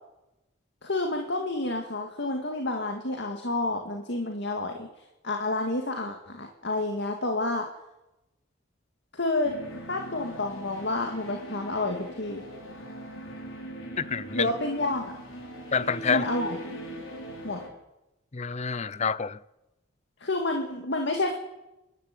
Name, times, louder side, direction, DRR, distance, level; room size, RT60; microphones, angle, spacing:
voice 1, 0.8-4.9 5.2-7.7 9.1-9.5 9.9-12.4 14.3-15.2 16.1-16.6 17.4-17.6 20.2-21.3, left 2 dB, 55° left, 2.2 m, -29 dB
sound 1, 9.4-17.7, right 1 dB, 75° left, 5.2 m, -41 dB
voice 2, 14.0-14.5 15.7-16.2 18.3-19.4, left 6 dB, 35° left, 0.7 m, -27 dB
27.5 x 12.5 x 9.4 m
head